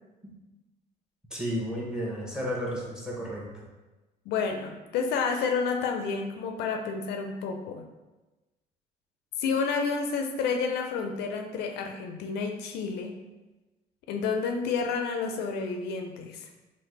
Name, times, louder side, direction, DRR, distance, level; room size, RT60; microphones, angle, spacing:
voice 1, 1.3-3.6, equal, 5° right, -3 dB, 0.8 m, -33 dB
voice 2, 4.3-7.8 9.4-13.2 14.1-16.5, left 5 dB, 75° left, 4 dB, 0.4 m, -30 dB
3.2 x 2.1 x 3.2 m, 1.1 s
cardioid pair, 110°, 17 cm